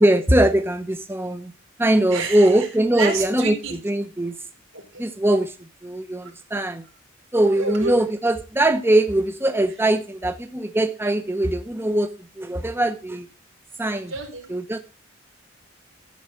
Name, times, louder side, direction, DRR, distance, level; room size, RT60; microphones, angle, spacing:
voice 1, 0.0-1.5 1.8-3.5 3.8-4.4 5.0-5.5 5.8-6.8 7.3-12.1 12.4-13.3 13.8-14.1 14.5-14.8, right 1 dB, 10° right, 8 dB, 0.8 m, -21 dB
voice 2, 2.1-2.7 3.0-3.8 4.7-5.1 7.5-7.9 14.1-14.5, right 3 dB, 85° right, 3 dB, 4.0 m, -29 dB
13.5 x 4.7 x 7.7 m, 0.33 s
head